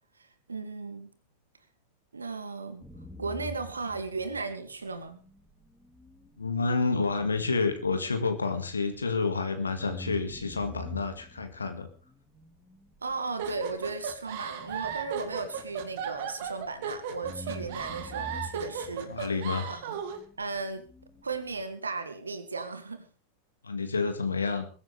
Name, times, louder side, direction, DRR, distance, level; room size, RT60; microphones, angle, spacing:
voice 1, 0.2-1.1 2.1-2.9 3.2-5.2 13.0-19.3 19.7-20.0 20.4-20.9 21.2-23.1, right 4 dB, 75° right, 10 dB, 2.3 m, -36 dB
sound 1, 2.8-9.3 9.8-16.8 17.2-21.6, equal, 5° left, 3.1 m, -47 dB
voice 2, 6.4-11.9 19.1-19.7 23.6-24.7, left 4 dB, 75° left, 7 dB, 2.0 m, -29 dB
sound 2, 13.4-20.2, right 7 dB, 50° right, 2.4 m, -36 dB
22.0 x 15.0 x 3.4 m, 0.36 s
figure-of-eight pair, 90°, 0 cm